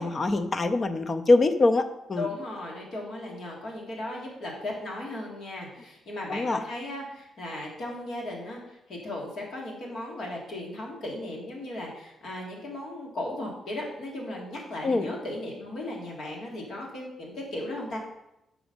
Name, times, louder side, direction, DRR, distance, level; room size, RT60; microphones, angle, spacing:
voice 1, 0.0-2.3 6.3-6.6 14.8-15.1, left 2 dB, 25° left, 8 dB, 0.4 m, -24 dB
voice 2, 2.2-18.0, left 1 dB, 45° left, -2 dB, 1.8 m, -36 dB
6.1 x 4.9 x 5.1 m, 0.87 s
cardioid pair, 180°, 0 cm